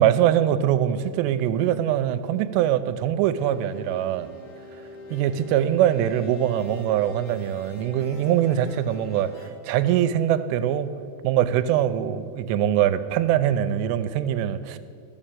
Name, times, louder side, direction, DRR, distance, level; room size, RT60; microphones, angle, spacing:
voice 1, 0.0-4.3 5.1-10.9 11.2-14.8, right 11 dB, 80° right, 11 dB, 2.7 m, -23 dB
sound 1, 3.4-9.5, left 2 dB, 60° left, 2.1 m, -43 dB
13.0 x 7.0 x 9.0 m, 2.4 s
omnidirectional pair, 5.1 m